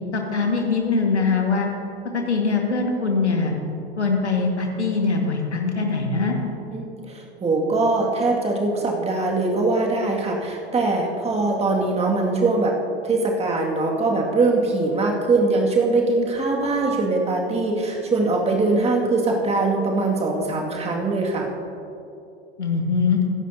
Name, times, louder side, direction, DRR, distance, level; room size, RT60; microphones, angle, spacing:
voice 1, 0.1-1.7 2.1-3.5 4.0-6.4 22.6-23.2, left 4 dB, 80° left, 1 dB, 1.9 m, -22 dB
voice 2, 6.7-12.7 13.0-21.5, right 3 dB, 20° right, -1 dB, 2.2 m, -22 dB
21.5 x 10.5 x 2.8 m, 2.8 s
figure-of-eight pair, 80°, 33 cm